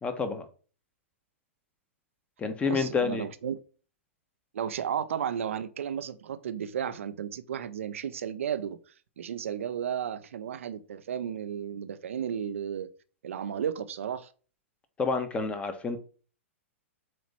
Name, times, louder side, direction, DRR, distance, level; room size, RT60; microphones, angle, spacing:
voice 1, 0.0-0.4 2.4-3.3 15.0-16.0, left 4 dB, 15° left, 1.1 m, -29 dB
voice 2, 2.7-3.6 4.5-8.8 9.2-12.9 13.2-14.3, right 8 dB, 75° right, 0.7 m, -33 dB
7.6 x 3.0 x 4.2 m
hypercardioid pair, 115°, 7 cm